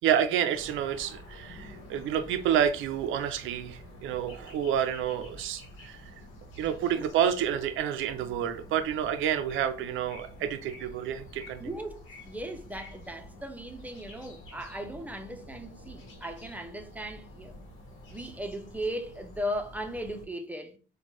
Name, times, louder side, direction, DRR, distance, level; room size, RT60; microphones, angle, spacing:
voice 1, 0.0-6.0 6.6-11.6, right 9 dB, 80° right, 0.4 m, -29 dB
sound 1, 0.5-20.3, left 1 dB, 75° left, 1.1 m, -49 dB
voice 2, 11.6-17.5 18.1-20.8, equal, 10° right, 0.6 m, -37 dB
4.2 x 2.2 x 3.0 m
cardioid pair, 90°, 20 cm